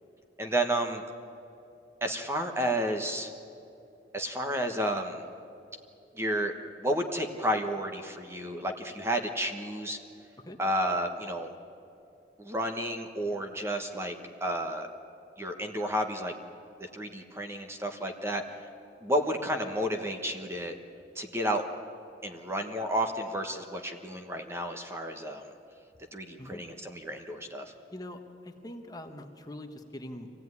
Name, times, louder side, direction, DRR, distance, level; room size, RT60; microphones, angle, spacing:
voice 1, 0.4-1.0 2.0-3.3 4.1-5.2 6.2-6.5 6.8-10.0 10.6-11.5 12.4-14.1 14.4-14.9 15.4-16.3 16.8-18.7 19.0-20.8 21.1-21.6 22.2-25.4 26.1-27.7, right 1 dB, 15° right, 4 dB, 1.2 m, -31 dB
voice 2, 27.9-30.4, left 1 dB, 20° left, 5 dB, 1.3 m, -43 dB
24.0 x 16.5 x 9.7 m, 2.7 s
head